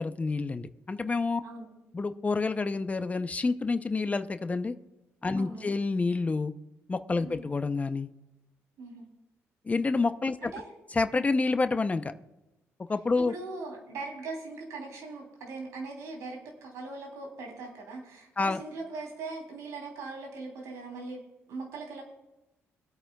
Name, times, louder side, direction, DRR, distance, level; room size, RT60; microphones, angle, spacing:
voice 1, 0.0-1.4 1.9-4.7 5.2-6.5 6.9-8.1 9.7-10.5 10.9-12.1 12.9-13.3 18.4-18.6, left 3 dB, 25° left, 10 dB, 0.6 m, -28 dB
voice 2, 1.4-1.9 5.4-5.8 7.2-7.4 8.8-9.1 10.4-10.6 13.2-21.2 21.5-22.0, right 3 dB, 80° right, 1 dB, 3.2 m, -40 dB
24.5 x 8.6 x 2.3 m, 0.98 s
cardioid pair, 80°, 5 cm